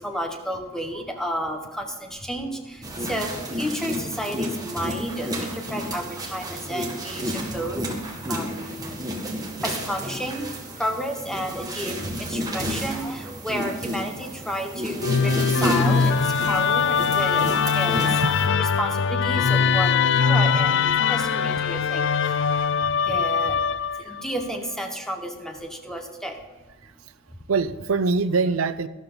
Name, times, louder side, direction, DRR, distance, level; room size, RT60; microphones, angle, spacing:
voice 1, 0.0-9.0 9.6-10.5 10.8-18.2 18.6-22.5 22.8-23.6 23.9-26.4, equal, ahead, 3 dB, 1.4 m, -32 dB
sound 1, 2.8-18.5, equal, 15° right, 1.8 m, -31 dB
Musical instrument, 15.0-24.2, left 6 dB, 55° left, 0.4 m, -22 dB
voice 2, 27.5-28.9, right 4 dB, 70° right, 13 dB, 0.6 m, -24 dB
12.5 x 12.5 x 4.0 m, 1.3 s
head